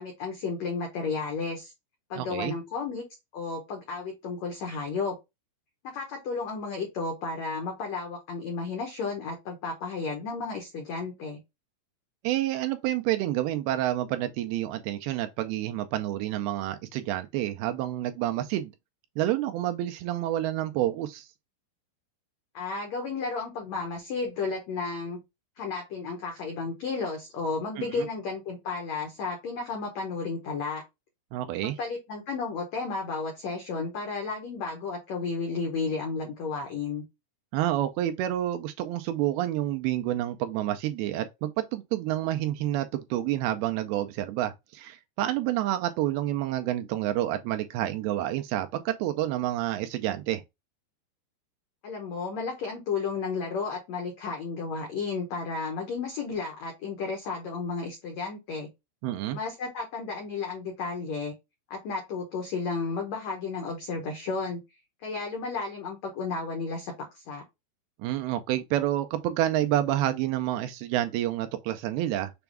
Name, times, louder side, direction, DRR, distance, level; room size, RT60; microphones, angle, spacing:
voice 1, 0.0-1.7 2.1-3.0 3.3-5.2 5.9-11.4 22.5-25.2 25.6-30.8 31.6-37.0 51.8-58.7 59.3-61.3 61.7-64.6 65.0-67.4, left 4 dB, 80° left, 1.5 m, -33 dB
voice 2, 2.2-2.5 12.2-18.7 19.2-21.3 27.8-28.1 31.3-31.8 37.5-50.4 59.0-59.4 68.0-72.3, right 13 dB, 80° right, 2.4 m, -29 dB
6.9 x 2.3 x 3.4 m
omnidirectional pair, 4.7 m